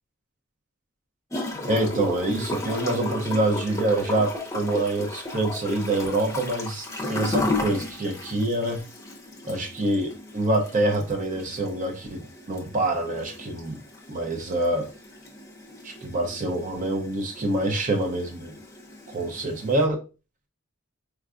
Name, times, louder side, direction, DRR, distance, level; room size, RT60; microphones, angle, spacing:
Gurgling / Toilet flush, 1.3-19.8, left 2 dB, 15° left, 0.7 m, -35 dB
voice 1, 1.7-8.8 9.4-13.8 14.1-14.9 15.8-18.5 19.1-20.0, right 2 dB, 40° right, 0.7 m, -26 dB
4.5 x 2.3 x 2.4 m
head